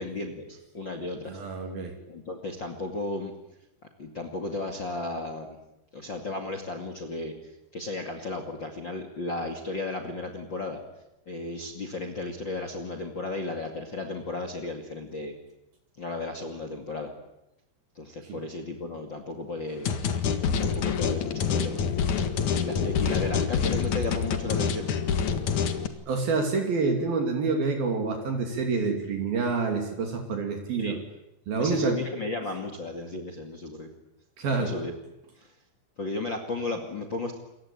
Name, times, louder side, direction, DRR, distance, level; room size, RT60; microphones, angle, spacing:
voice 1, 0.0-1.4 2.1-3.3 4.0-5.6 5.9-7.3 7.7-10.8 11.3-15.3 16.0-17.1 17.9-20.0 20.6-21.8 22.6-24.9 30.7-31.0 31.6-33.9 34.5-34.9 35.4-35.5 36.0-37.4, left 2 dB, 35° left, 5 dB, 2.5 m, -34 dB
voice 2, 1.3-1.9 18.3-18.4 26.1-31.0 31.5-32.0 34.4-34.7, right 4 dB, 65° right, 3 dB, 4.6 m, -27 dB
sound 1, 19.9-25.9, left 6 dB, 55° left, 2.8 m, -26 dB
28.5 x 23.5 x 8.8 m, 0.87 s
omnidirectional pair, 4.6 m